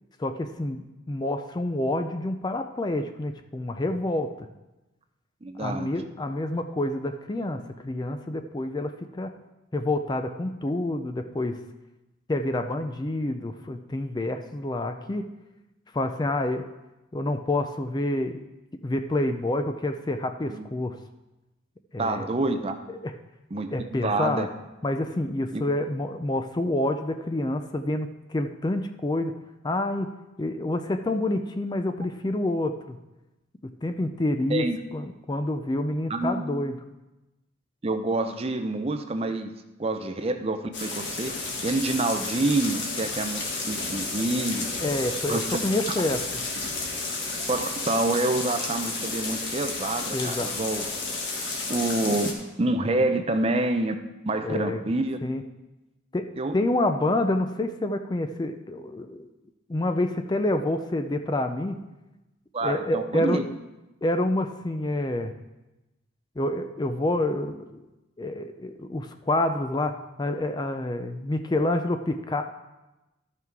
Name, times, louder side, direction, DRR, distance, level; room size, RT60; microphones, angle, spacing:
voice 1, 0.2-4.5 5.6-9.3 9.7-11.6 12.3-15.3 15.9-16.6 17.1-18.4 18.8-21.0 21.9-22.3 23.0-23.1 23.7-24.5 24.8-29.3 29.6-33.0 33.8-34.7 34.9-36.7 44.8-46.2 50.1-50.5 54.4-54.8 55.2-55.4 56.1-59.3 59.7-61.8 62.6-63.4 64.0-65.3 66.4-67.8 68.2-72.4, left 1 dB, 20° left, 7 dB, 0.4 m, -28 dB
voice 2, 5.4-5.9 20.5-20.7 22.0-22.8 23.5-23.7 24.0-24.5 25.5-25.6 34.5-34.8 36.1-36.4 37.8-39.5 39.8-41.3 41.6-44.7 45.3-45.8 47.5-50.8 51.7-54.0 54.3-55.2 56.4-56.5 62.5-63.5, right 2 dB, 30° right, 7 dB, 0.5 m, -27 dB
sound 1, 40.7-52.3, left 3 dB, 60° left, 1.6 m, -32 dB
12.5 x 5.8 x 4.6 m, 1.0 s
head